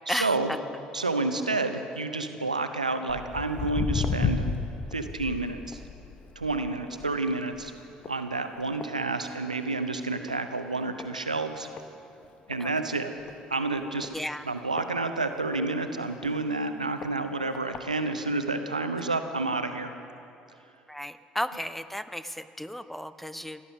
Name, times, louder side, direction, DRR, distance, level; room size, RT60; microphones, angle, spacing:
voice 1, 0.1-0.6 0.9-4.5 4.9-5.8 6.4-7.7 8.1-11.7 12.5-13.1 13.5-14.1 14.4-19.9, right 3 dB, 90° right, 8 dB, 0.6 m, -29 dB
Walk footsteps, 3.1-9.8 10.1-10.4 11.0-11.1 11.8-11.9 12.2-12.3 12.5-12.6 13.2-13.4 14.0-15.6 16.2-16.3 17.0-17.1 17.5-17.8 18.5-18.6, left 5 dB, 40° left, 1.0 m, -33 dB
voice 2, 14.1-14.4 19.0-19.1 20.9-23.6, equal, 5° left, 13 dB, 0.6 m, -34 dB
17.0 x 11.0 x 6.4 m, 2.7 s
figure-of-eight pair, 55°, 4 cm